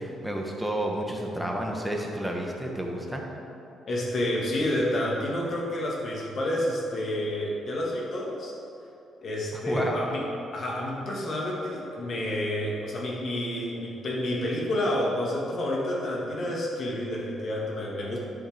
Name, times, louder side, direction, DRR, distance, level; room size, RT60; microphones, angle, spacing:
voice 1, 0.0-3.2 9.7-10.0, right 1 dB, 5° right, 0 dB, 1.4 m, -30 dB
voice 2, 3.9-8.5 9.2-10.2 10.5-18.2, left 1 dB, 55° left, -3 dB, 2.0 m, -29 dB
11.0 x 6.3 x 3.5 m, 2.8 s
cardioid pair, 90°, 0 cm